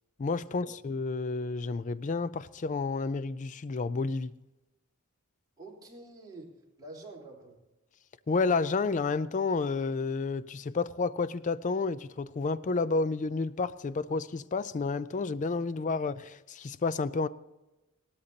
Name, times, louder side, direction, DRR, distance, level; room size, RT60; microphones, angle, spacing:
voice 1, 0.2-4.3 8.3-17.3, left 4 dB, 35° left, 0.4 m, -30 dB
voice 2, 5.6-7.6, right 2 dB, 20° right, 3.5 m, -48 dB
18.0 x 13.0 x 2.8 m
head